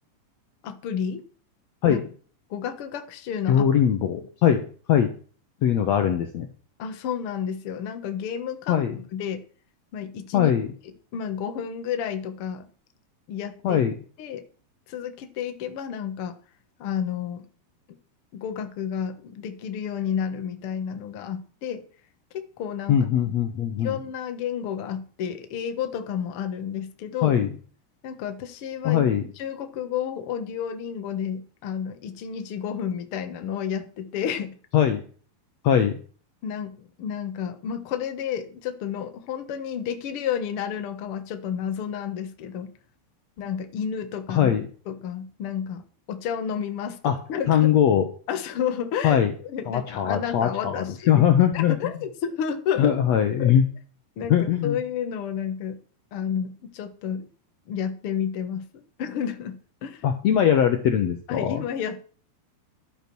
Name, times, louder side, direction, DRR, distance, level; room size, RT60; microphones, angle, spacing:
voice 1, 0.6-1.2 1.9-2.0 2.5-3.6 4.0-4.1 6.8-8.8 9.1-9.4 9.9-10.5 11.1-12.7 13.3-13.8 14.2-14.4 14.9-16.3 16.8-17.5 18.3-21.8 22.3-23.0 23.8-27.4 28.0-29.0 29.4-34.6 36.4-42.7 43.4-44.5 44.9-47.7 48.3-51.2 51.5-52.9 53.4-53.6 54.2-55.8 56.1-57.3 57.7-60.0 61.3-62.0, left 8 dB, 65° left, 8 dB, 1.3 m, -31 dB
voice 2, 3.5-5.1 5.6-6.5 8.7-9.0 10.3-10.7 13.6-13.9 22.9-24.0 27.2-27.5 28.8-29.2 34.7-35.0 35.6-36.0 44.3-44.7 47.0-47.2 47.5-48.1 49.0-49.3 49.7-51.9 52.8-53.6 54.3-54.8 60.0-61.6, left 9 dB, 80° left, 7 dB, 1.5 m, -21 dB
12.0 x 8.9 x 6.2 m, 0.42 s
omnidirectional pair, 4.7 m